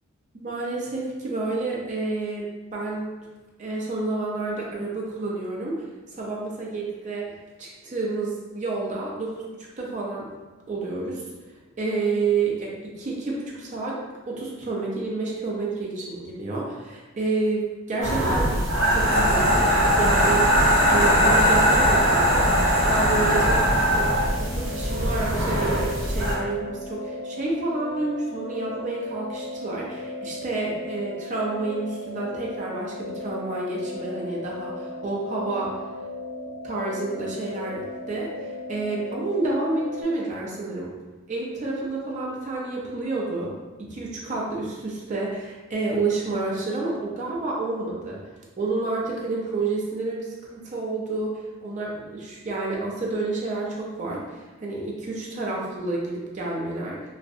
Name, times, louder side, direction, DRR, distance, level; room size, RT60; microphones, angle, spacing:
voice 1, 0.3-3.2 3.6-5.8 6.1-7.3 7.6-9.4 9.8-10.3 10.7-11.2 11.8-14.0 14.3-18.6 18.9-22.4 22.8-23.6 23.9-35.8 36.6-40.9 41.3-43.5 43.8-48.2 48.6-57.0, right 3 dB, 40° right, -4 dB, 0.4 m, -29 dB
sound 1, 18.0-26.3, equal, 75° right, 0.6 m, -20 dB
sound 2, 22.0-40.0, left 2 dB, 85° left, 0.4 m, -36 dB
2.4 x 2.0 x 2.6 m, 1.2 s
head